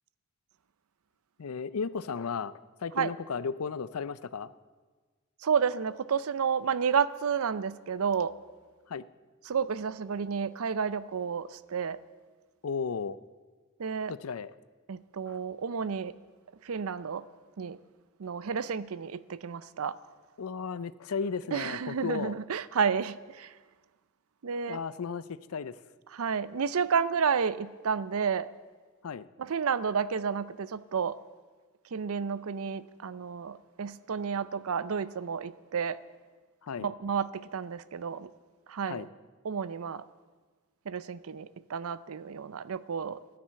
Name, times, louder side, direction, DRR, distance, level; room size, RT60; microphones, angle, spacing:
voice 1, 1.4-2.5 2.8-4.5 8.9-9.0 12.6-13.2 14.1-14.5 15.3-15.4 20.4-22.3 24.7-25.8 29.0-29.3 36.6-36.9 38.9-39.1, left 5 dB, 75° left, 17 dB, 0.5 m, -34 dB
voice 2, 5.4-8.3 9.5-12.0 13.8-14.1 14.9-16.1 16.7-17.2 17.6-17.8 18.2-19.9 21.5-23.5 24.4-24.8 26.1-28.5 29.4-31.1 31.9-36.0 36.8-38.3 38.7-39.0 39.4-40.0 40.9-43.2, right 6 dB, 70° right, 17 dB, 0.5 m, -31 dB
14.0 x 10.5 x 7.5 m, 1.4 s
head